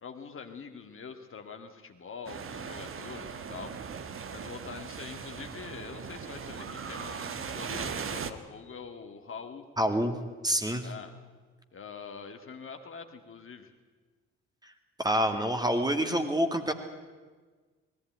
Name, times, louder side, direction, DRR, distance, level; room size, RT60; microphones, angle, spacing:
voice 1, 0.0-9.7 10.8-11.1 11.7-13.7, left 5 dB, 35° left, 5 dB, 2.1 m, -44 dB
sound 1, 2.3-8.3, right 6 dB, 35° right, 1.4 m, -39 dB
voice 2, 9.8-10.2 10.4-10.9 14.6-14.7 15.0-16.7, equal, 10° right, 6 dB, 2.3 m, -27 dB
20.5 x 14.5 x 9.2 m, 1.4 s
figure-of-eight pair, 45°, 35 cm